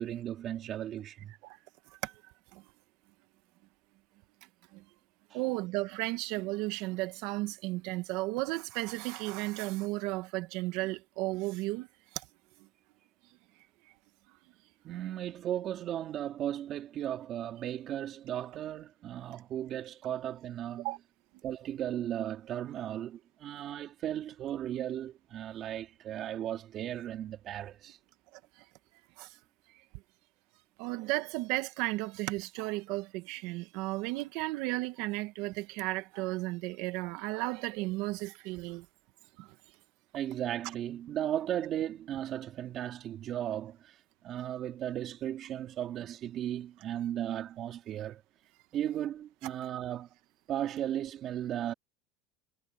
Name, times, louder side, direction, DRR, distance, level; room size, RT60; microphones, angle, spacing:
voice 1, 0.0-1.3 14.8-20.9 21.4-28.0 40.1-44.0 44.2-48.2 48.7-50.1 50.5-51.7, right 11 dB, 40° right, 3.0 m, -36 dB
voice 2, 5.3-11.9 20.8-21.0 29.2-29.3 30.8-38.8 39.4-39.5, right 20 dB, 70° right, 1.5 m, -34 dB
supercardioid pair, 135°, 0 cm